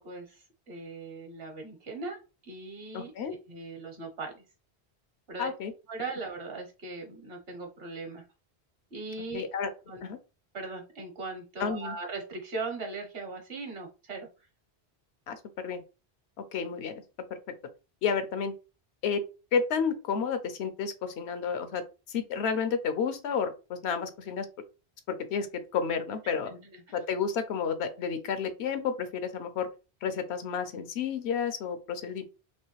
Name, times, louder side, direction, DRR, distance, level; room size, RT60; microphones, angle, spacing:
voice 1, 0.0-3.1 3.5-4.4 5.3-5.5 5.9-8.2 8.9-9.4 9.9-10.0 10.5-14.3 26.5-26.9, right 3 dB, 65° right, 2 dB, 1.3 m, -39 dB
voice 2, 2.9-3.3 5.4-5.7 9.3-9.7 10.0-10.2 11.6-11.9 15.3-15.8 16.5-17.0 18.0-18.5 19.0-19.2 19.5-21.8 22.1-24.5 25.1-25.5 25.7-26.5 26.9-29.7 30.0-32.2, left 6 dB, 80° left, 10 dB, 0.9 m, -31 dB
3.2 x 3.0 x 3.0 m, 0.31 s
omnidirectional pair, 1.1 m